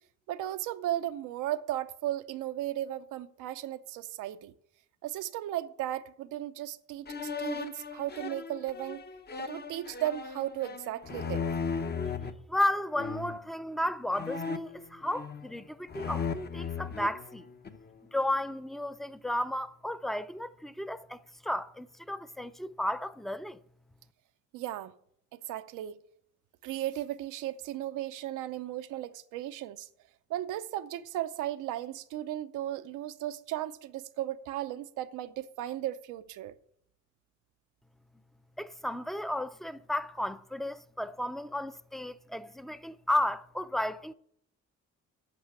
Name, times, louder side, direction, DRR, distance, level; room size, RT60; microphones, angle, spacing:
voice 1, 0.3-4.5 5.0-9.0 9.4-11.5 24.5-24.9 25.5-26.0 26.6-29.9 30.3-36.6, right 13 dB, 90° right, 0.6 m, -35 dB
sound 1, 7.1-12.3 13.0-13.5 14.1-15.6 15.9-17.9, left 5 dB, 35° left, 0.8 m, -37 dB
voice 2, 12.5-17.4 18.1-23.6 38.6-44.1, left 1 dB, ahead, 0.4 m, -33 dB
9.0 x 5.5 x 8.1 m
cardioid pair, 90°, 30 cm